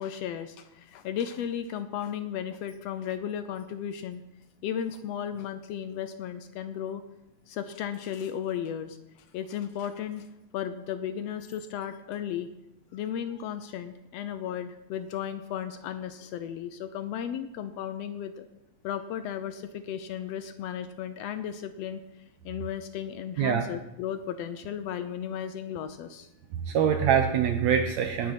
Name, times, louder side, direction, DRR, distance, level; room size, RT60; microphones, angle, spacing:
voice 1, 0.0-4.2 4.6-7.0 7.5-9.0 9.3-10.2 10.5-12.5 12.9-18.5 18.8-22.0 22.4-26.3, left 9 dB, 75° left, 10 dB, 1.5 m, -35 dB
voice 2, 26.7-28.3, right 8 dB, 70° right, 6 dB, 1.9 m, -24 dB
19.0 x 6.5 x 5.9 m, 0.93 s
omnidirectional pair, 3.4 m